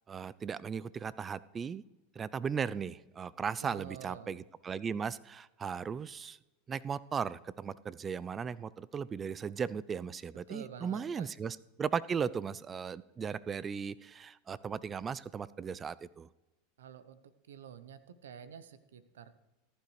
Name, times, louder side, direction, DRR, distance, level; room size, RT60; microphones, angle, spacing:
voice 1, 0.1-1.8 2.2-6.4 6.7-16.3, right 6 dB, 25° right, 19 dB, 0.4 m, -37 dB
voice 2, 3.6-4.3 10.5-11.3 16.8-17.2 17.5-19.3, right 8 dB, 85° right, 13 dB, 0.7 m, -48 dB
14.5 x 11.5 x 3.2 m, 1.1 s
hypercardioid pair, 105°, 0 cm